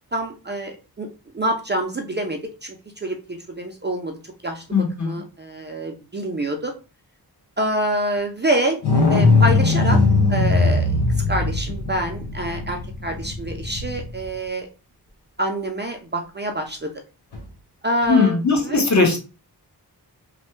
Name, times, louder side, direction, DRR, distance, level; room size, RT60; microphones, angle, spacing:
voice 1, 0.1-1.1 1.3-4.2 4.4-4.6 5.0-6.7 7.6-8.8 9.1-10.0 10.3-10.9 11.3-14.7 15.4-16.9 17.8-18.4 18.6-18.8, right 1 dB, 25° right, 3 dB, 0.5 m, -26 dB
voice 2, 4.7-5.2 18.1-19.3, left 4 dB, 45° left, 1 dB, 1.0 m, -19 dB
sound 1, 8.8-14.3 17.3-17.4, left 3 dB, 85° left, 0.8 m, -19 dB
3.1 x 2.2 x 3.1 m, 0.32 s
wide cardioid pair, 105°, 40 cm